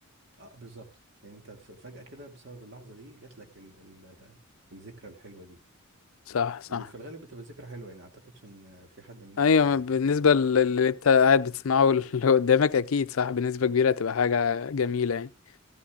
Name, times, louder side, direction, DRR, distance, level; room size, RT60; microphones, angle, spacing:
voice 1, 0.4-0.9 1.2-4.4 4.7-5.6 6.7-10.5, right 2 dB, 55° right, 2.3 m, -47 dB
voice 2, 6.3-6.8 9.4-15.3, left 6 dB, 80° left, 0.5 m, -23 dB
15.5 x 13.0 x 2.4 m
head